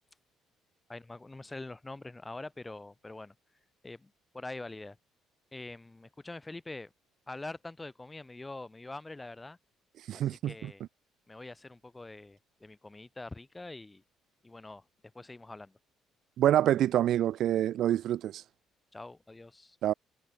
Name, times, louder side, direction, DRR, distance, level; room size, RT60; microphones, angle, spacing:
voice 1, 0.9-3.3 3.8-5.0 5.5-6.9 7.3-9.6 10.1-10.8 11.3-14.0 14.4-14.8 15.1-15.8 18.9-19.8, left 2 dB, 15° left, 4.2 m, -44 dB
voice 2, 10.1-10.7 16.4-18.4 19.8-19.9, right 12 dB, 70° right, 0.4 m, -26 dB
supercardioid pair, 70°, 0 cm